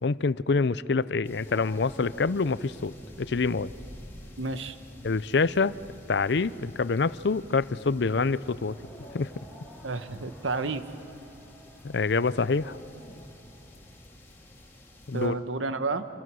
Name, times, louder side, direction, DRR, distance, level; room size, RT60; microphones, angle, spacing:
voice 1, 0.0-3.7 5.0-5.8 6.1-8.8 9.1-9.3 11.8-12.8 15.1-15.4, left 4 dB, 65° left, 17 dB, 0.5 m, -26 dB
sound 1, 1.2-15.3, left 1 dB, 10° left, 3.0 m, -49 dB
Dog, 1.4-3.1 5.2-5.7 6.5-6.6 8.7-9.9 12.4-13.4, left 1 dB, 35° left, 1.3 m, -50 dB
voice 2, 4.4-4.8 9.8-10.8 15.1-16.1, right 3 dB, 90° right, 9 dB, 1.2 m, -30 dB
sound 2, 7.6-14.1, right 1 dB, 5° right, 2.5 m, -54 dB
27.0 x 27.0 x 6.3 m, 2.8 s
head